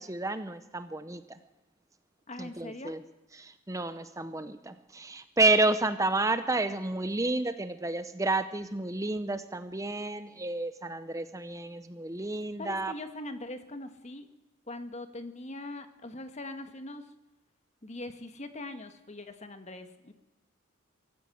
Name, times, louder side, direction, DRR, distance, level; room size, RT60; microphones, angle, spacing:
voice 1, 0.0-1.4 2.4-3.0 3.3-12.9, right 2 dB, 15° right, 11 dB, 0.8 m, -30 dB
voice 2, 2.3-3.0 12.6-14.3 14.7-17.0 17.8-20.1, left 2 dB, 35° left, 8 dB, 1.7 m, -41 dB
24.5 x 15.5 x 7.9 m, 0.97 s
head